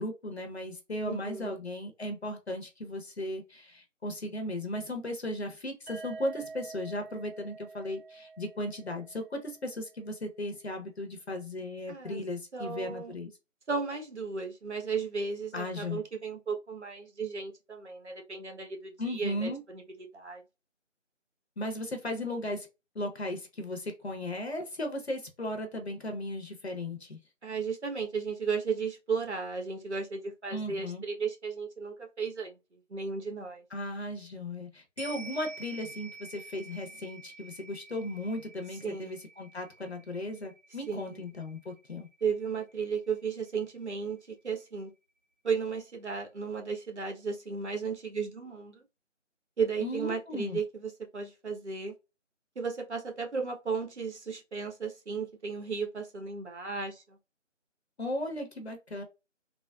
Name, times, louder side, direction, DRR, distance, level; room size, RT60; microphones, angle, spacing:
voice 1, 0.0-13.3 15.5-16.0 19.0-19.6 21.6-22.7 22.9-27.2 30.5-31.0 33.7-42.1 49.8-50.6 58.0-59.0, left 1 dB, 55° left, 0.8 m, -36 dB
voice 2, 1.0-1.5 11.9-12.2 12.5-13.2 13.7-19.8 20.1-20.4 27.4-33.6 38.8-39.2 40.9-41.2 42.2-44.2 44.4-44.9 45.4-48.8 49.6-51.9 52.6-57.2, right 5 dB, 60° right, 1.0 m, -34 dB
sound 1, 5.9-9.7, right 3 dB, 10° right, 1.1 m, -47 dB
sound 2, 35.0-43.5 43.9-44.0, right 3 dB, 45° right, 1.4 m, -49 dB
3.4 x 2.0 x 2.2 m
figure-of-eight pair, 165°, 38 cm